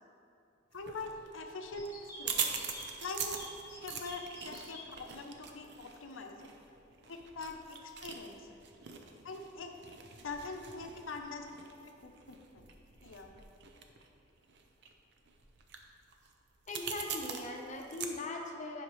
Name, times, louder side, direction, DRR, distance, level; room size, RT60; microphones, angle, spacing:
voice 1, 0.7-2.5 3.0-3.4 3.8-6.5 7.1-8.5 9.2-9.8 10.2-11.5 11.8-12.7 13.0-13.3, left 3 dB, 85° left, 4 dB, 0.8 m, -43 dB
sound 1, 0.7-18.1, right 6 dB, 60° right, 0.6 m, -43 dB
sound 2, 1.7-4.9, left 1 dB, 15° left, 1.3 m, -48 dB
voice 2, 16.7-18.8, left 2 dB, 35° left, 1 dB, 0.8 m, -40 dB
10.5 x 5.7 x 3.2 m, 2.7 s
head